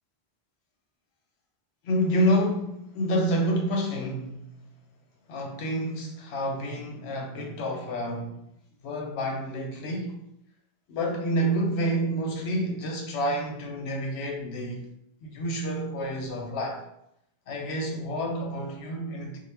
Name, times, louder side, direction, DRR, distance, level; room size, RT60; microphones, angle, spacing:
voice 1, 1.8-4.6 5.3-8.4 8.8-10.2 10.9-14.9 15.2-16.9 17.5-19.4, equal, 85° left, 0.8 m, -28 dB
2.1 x 2.0 x 3.2 m
omnidirectional pair, 1.1 m